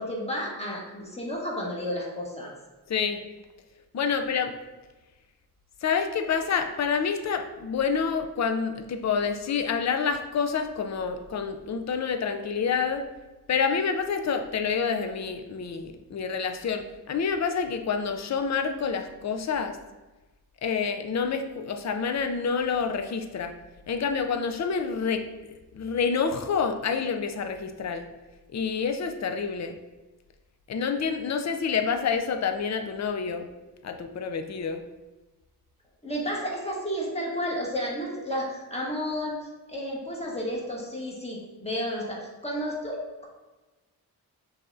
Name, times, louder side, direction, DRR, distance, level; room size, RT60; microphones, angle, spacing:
voice 1, 0.0-2.5 36.0-39.4 39.7-43.3, equal, 15° left, -3 dB, 1.4 m, -32 dB
voice 2, 2.9-3.3 3.9-4.6 5.8-13.1 13.5-19.8 20.6-23.5 23.9-28.1 28.5-29.7 30.7-33.5 33.8-34.8, left 6 dB, 45° left, 7 dB, 0.5 m, -28 dB
5.6 x 3.4 x 2.6 m, 1.1 s
cardioid pair, 65°, 40 cm